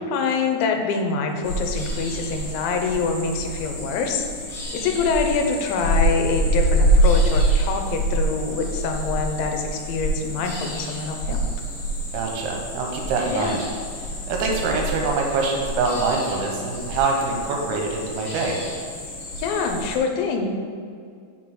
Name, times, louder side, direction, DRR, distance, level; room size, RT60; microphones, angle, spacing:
voice 1, 0.0-11.4 13.3-13.6 19.4-20.5, left 4 dB, 85° left, 4 dB, 2.9 m, -25 dB
sound 1, 1.4-20.0, right 1 dB, 55° left, 2.2 m, -26 dB
voice 2, 12.1-13.6 14.3-18.6, right 3 dB, 80° right, 0 dB, 3.2 m, -24 dB
6.7 x 4.6 x 5.9 m, 2.2 s
omnidirectional pair, 5.3 m